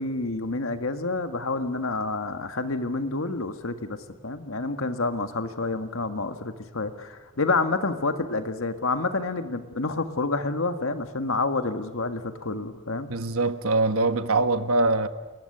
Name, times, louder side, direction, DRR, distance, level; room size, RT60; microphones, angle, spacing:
voice 1, 0.0-4.0 4.2-13.1, left 3 dB, 75° left, 1.7 m, -28 dB
voice 2, 13.1-15.1, right 3 dB, 85° right, 1.4 m, -23 dB
29.5 x 14.5 x 10.0 m
head